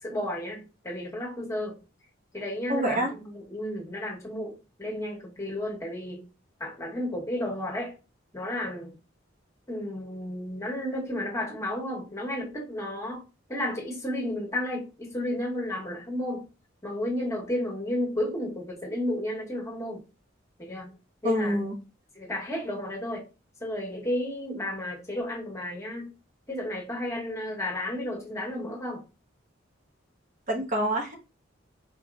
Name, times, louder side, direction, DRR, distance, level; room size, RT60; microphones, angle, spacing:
voice 1, 0.0-1.8 2.3-6.3 6.6-7.9 8.3-8.9 9.7-13.2 13.5-16.5 16.8-20.0 20.6-21.6 22.1-23.3 23.6-26.1 26.5-29.0, left 1 dB, 15° left, 1.1 m, -32 dB
voice 2, 2.7-3.1 21.2-21.7 30.5-31.1, equal, 40° right, 0.9 m, -26 dB
4.7 x 2.8 x 2.4 m
head